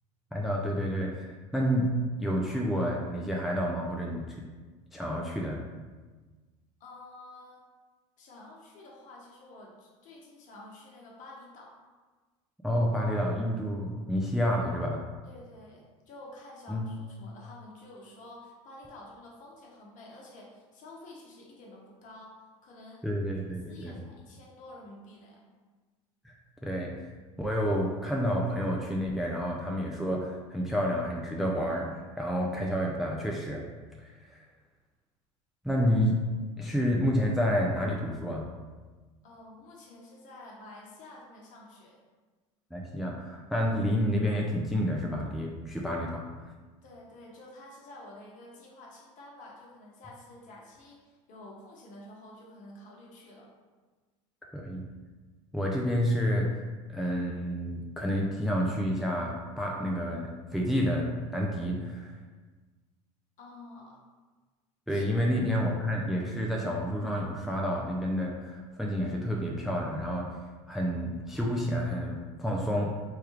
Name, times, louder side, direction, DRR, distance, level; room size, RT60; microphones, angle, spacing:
voice 1, 0.3-4.4 4.9-5.6 12.6-15.0 16.7-16.8 23.0-24.0 26.2-26.9 27.4-33.6 34.0-34.4 35.6-36.2 36.6-38.5 42.7-46.5 54.5-54.8 55.5-56.5 56.9-62.1 64.9-70.3 70.7-73.0, equal, ahead, -1 dB, 0.3 m, -29 dB
voice 2, 6.8-7.6 8.2-11.8 15.2-23.1 23.7-25.4 39.2-42.0 46.8-53.5 63.4-64.0 64.9-65.2, left 1 dB, 50° left, -2 dB, 0.9 m, -50 dB
3.3 x 2.2 x 3.1 m, 1.3 s
hypercardioid pair, 85°, 17 cm